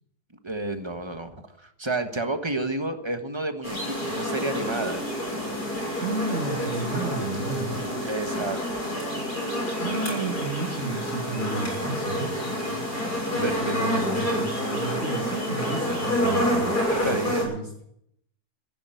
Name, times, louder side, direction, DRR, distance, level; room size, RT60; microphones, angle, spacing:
voice 1, 0.4-5.1 8.0-8.8 13.2-13.8 16.9-17.5, right 2 dB, 20° right, 7 dB, 1.3 m, -31 dB
sound 1, 3.6-17.4, equal, 75° left, 7.2 m, -28 dB
voice 2, 6.0-7.8 9.8-12.9 13.3-17.7, right 2 dB, 50° right, -1 dB, 2.7 m, -32 dB
15.5 x 11.5 x 7.9 m, 0.75 s
omnidirectional pair, 1.7 m